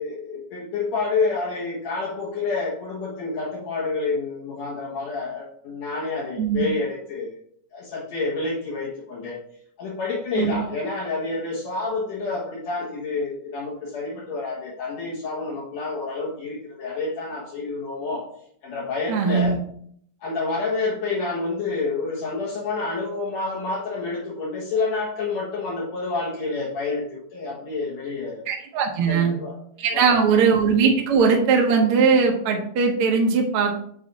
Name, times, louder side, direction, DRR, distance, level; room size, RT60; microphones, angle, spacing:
voice 1, 0.0-7.4 7.7-9.4 9.8-18.3 18.6-19.6 20.2-28.4 29.0-29.6 29.9-30.3, left 3 dB, 65° left, -5 dB, 2.2 m, -28 dB
voice 2, 19.1-19.6 28.5-29.3 29.8-33.8, right 5 dB, 65° right, 1 dB, 1.4 m, -20 dB
7.5 x 3.3 x 4.0 m, 0.64 s
omnidirectional pair, 3.6 m